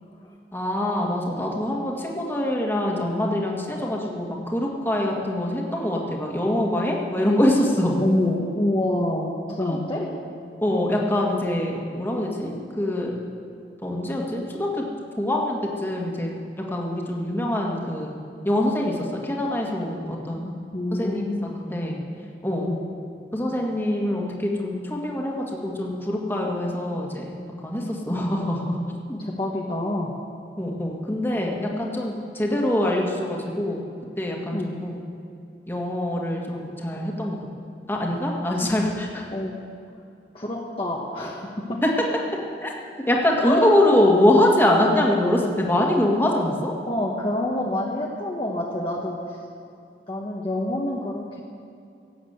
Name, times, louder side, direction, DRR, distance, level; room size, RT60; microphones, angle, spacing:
voice 1, 0.5-8.0 9.6-9.8 10.6-13.1 13.8-14.9 15.2-16.3 16.6-18.2 18.4-20.5 20.9-22.0 22.4-22.7 23.3-27.4 27.6-28.8 29.1-29.2 30.6-33.8 34.2-35.0 35.7-37.5 37.9-39.3 41.8-41.9 42.6-42.7 43.1-46.7, left 1 dB, 15° left, -1 dB, 1.8 m, -24 dB
voice 2, 8.0-10.1 20.7-21.5 22.7-22.8 29.2-30.1 34.5-34.8 38.5-38.6 39.3-39.5 40.3-41.8 43.4-43.7 46.9-49.2 50.1-51.4, left 1 dB, 30° left, -3 dB, 1.3 m, -27 dB
17.0 x 8.5 x 8.1 m, 2.5 s
head